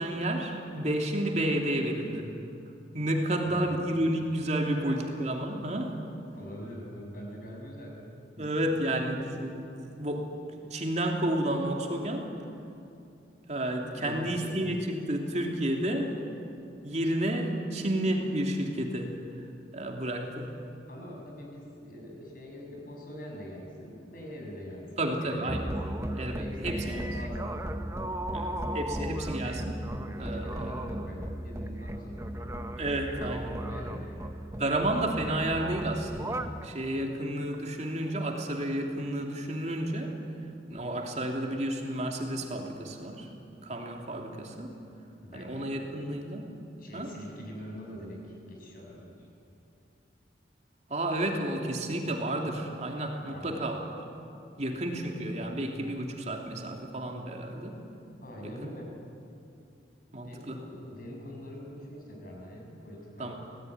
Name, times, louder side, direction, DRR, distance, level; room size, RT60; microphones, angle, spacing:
voice 1, 0.0-2.3 2.9-6.0 8.4-10.4 10.7-12.3 13.5-16.2 16.8-19.4 19.7-20.5 25.0-25.7 26.1-27.1 28.3-29.8 30.1-30.7 32.8-33.6 33.8-33.9 34.6-40.2 40.7-43.3 43.6-44.8 45.3-46.5 46.9-47.1 50.9-53.8 54.6-57.8 58.4-58.7 60.1-60.6 63.2-63.3, right 1 dB, 35° right, 2 dB, 2.9 m, -31 dB
voice 2, 3.4-3.8 6.3-8.0 8.4-8.8 13.9-14.6 20.9-27.6 28.9-29.2 30.2-32.7 33.3-34.4 36.9-37.0 45.2-45.8 46.8-49.3 53.3-53.6 58.2-58.9 60.2-63.3, equal, 50° left, 0 dB, 6.7 m, -44 dB
sound 1, 25.5-36.7, right 1 dB, 15° right, 1.0 m, -36 dB
25.5 x 18.5 x 9.6 m, 2.7 s
head